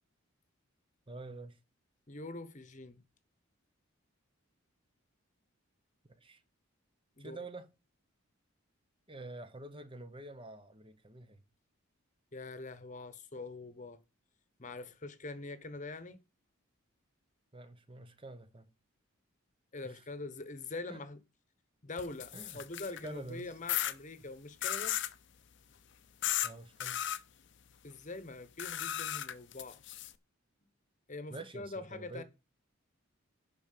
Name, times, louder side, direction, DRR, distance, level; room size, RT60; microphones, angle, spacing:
voice 1, 1.1-1.6 6.2-6.4 7.2-7.7 9.1-11.4 17.5-18.7 19.8-20.0 20.9-21.0 22.3-22.6 23.0-23.5 26.4-27.0 31.3-32.2, right 2 dB, 25° right, 0.9 m, -47 dB
voice 2, 2.1-3.0 7.2-7.4 12.3-14.0 14.6-16.2 19.7-21.2 21.8-25.0 27.8-29.8 31.1-32.2, left 3 dB, 35° left, 1.0 m, -44 dB
sound 1, 22.0-23.1 23.7-23.9 24.6-25.1 26.2-26.5 26.8-27.2 28.6-30.1, left 12 dB, 60° left, 0.7 m, -35 dB
11.0 x 4.5 x 6.6 m
head